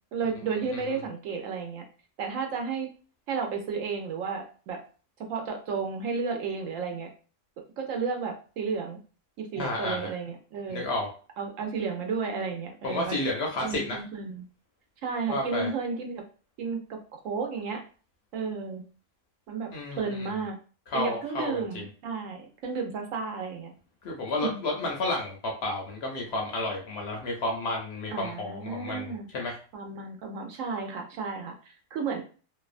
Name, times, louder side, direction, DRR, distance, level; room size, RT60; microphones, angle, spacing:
voice 1, 0.1-1.8 2.2-2.9 3.3-4.8 5.3-7.1 7.8-9.0 9.4-10.9 11.4-13.2 13.6-14.4 15.0-16.2 16.6-17.8 18.3-18.8 19.5-19.7 20.0-20.6 20.9-23.7 24.4-24.6 28.1-29.3 29.7-31.5 31.9-32.2, right 5 dB, 75° right, 3 dB, 1.0 m, -32 dB
voice 2, 9.6-10.1 10.7-11.1 12.8-14.0 15.3-15.7 19.7-20.3 20.9-21.8 24.0-29.6, left 2 dB, 60° left, 0 dB, 0.7 m, -31 dB
2.6 x 2.1 x 2.4 m, 0.38 s
omnidirectional pair, 1.4 m